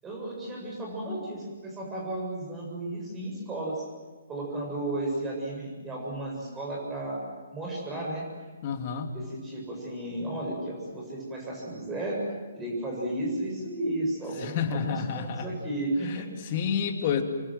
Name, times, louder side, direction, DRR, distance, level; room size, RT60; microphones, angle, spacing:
voice 1, 0.0-3.9 4.3-7.2 7.5-8.2 9.1-12.2 12.5-16.5, right 1 dB, 15° right, -3 dB, 7.6 m, -33 dB
voice 2, 8.6-9.1 14.4-15.5 16.1-16.2 16.5-17.2, left 7 dB, 40° left, 6 dB, 2.9 m, -29 dB
28.0 x 24.0 x 8.0 m, 1.4 s
figure-of-eight pair, 135°, 0 cm